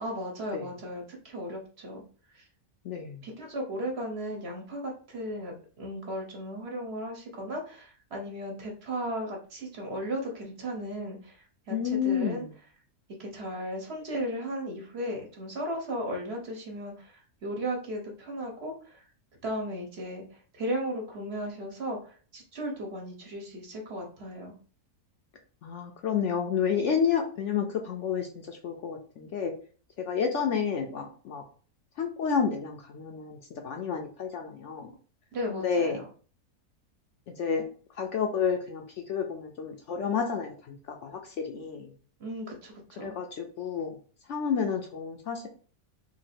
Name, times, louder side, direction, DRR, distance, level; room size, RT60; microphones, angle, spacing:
voice 1, 0.0-2.0 2.3-2.4 3.2-11.8 12.0-12.4 13.2-19.0 19.4-24.5 35.3-36.0 42.2-43.2, equal, 50° right, 1 dB, 1.1 m, -36 dB
voice 2, 2.8-3.3 11.7-12.5 25.6-29.5 30.0-31.4 32.0-34.9 35.5-36.0 37.3-37.6 37.9-41.9 43.0-44.0 44.3-45.5, left 6 dB, 65° left, 3 dB, 0.8 m, -30 dB
3.0 x 2.7 x 4.1 m, 0.40 s
omnidirectional pair, 1.5 m